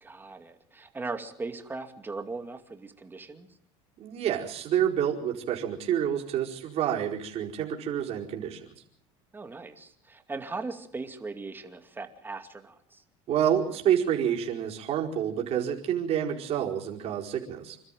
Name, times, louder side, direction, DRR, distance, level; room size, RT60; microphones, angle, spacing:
voice 1, 0.0-3.5 9.3-13.0, right 3 dB, 15° right, 7 dB, 2.4 m, -39 dB
voice 2, 4.0-8.6 13.3-17.8, right 9 dB, 50° right, 0 dB, 4.7 m, -28 dB
27.5 x 13.0 x 9.2 m, 0.69 s
supercardioid pair, 120°, 14 cm